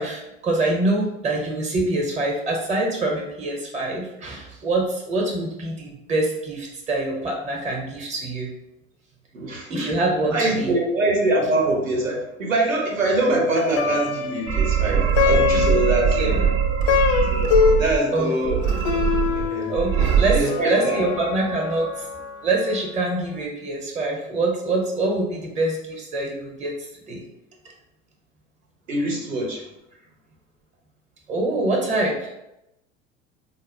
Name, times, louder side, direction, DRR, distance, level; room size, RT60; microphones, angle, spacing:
voice 1, 0.0-8.5 9.7-10.7 16.1-16.4 18.1-18.6 19.7-22.1 22.4-26.7 27.1-27.2 31.3-32.3, right 2 dB, 20° right, 0 dB, 0.8 m, -25 dB
voice 2, 9.3-9.9 10.3-16.5 17.3-18.6 19.3-19.7 20.3-21.0 28.9-29.6, right 2 dB, 85° right, 0 dB, 0.9 m, -24 dB
Plucked string instrument, 13.6-23.0, left 7 dB, 40° left, 0.4 m, -25 dB
sound 1, 14.5-18.0 18.5-19.5 19.8-20.4, right 8 dB, 55° right, 0.5 m, -21 dB
4.0 x 2.0 x 2.7 m, 0.86 s
figure-of-eight pair, 80°, 38 cm